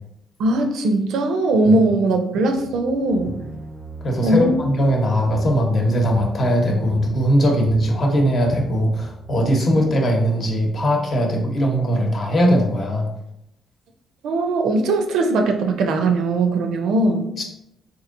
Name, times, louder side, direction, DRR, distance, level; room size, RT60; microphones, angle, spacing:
voice 1, 0.4-3.4 4.2-4.6 14.2-17.3, right 2 dB, 80° right, 4 dB, 0.5 m, -19 dB
sound 1, 2.6-10.3, right 3 dB, 15° right, 0.5 m, -40 dB
voice 2, 4.0-13.1 17.4-17.5, equal, 50° left, 1 dB, 0.8 m, -20 dB
3.8 x 2.9 x 2.5 m, 0.83 s
cardioid pair, 90°, 0 cm